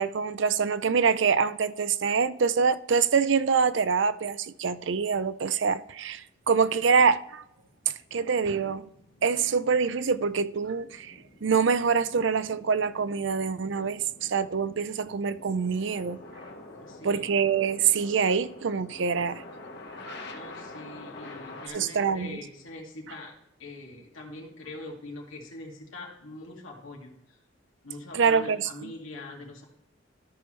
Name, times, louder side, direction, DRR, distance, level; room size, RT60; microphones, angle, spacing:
voice 1, 0.0-7.4 7.9-8.9 9.2-11.1 11.4-16.2 17.0-19.4 20.1-20.2 21.7-22.4 28.1-28.9, right 6 dB, 70° right, 0.5 m, -25 dB
sound 1, 6.0-21.7, left 2 dB, 55° left, 1.5 m, -48 dB
voice 2, 16.8-17.3 20.3-23.3 23.6-27.2 27.8-29.7, left 2 dB, 85° left, 2.2 m, -43 dB
13.5 x 6.1 x 3.2 m
head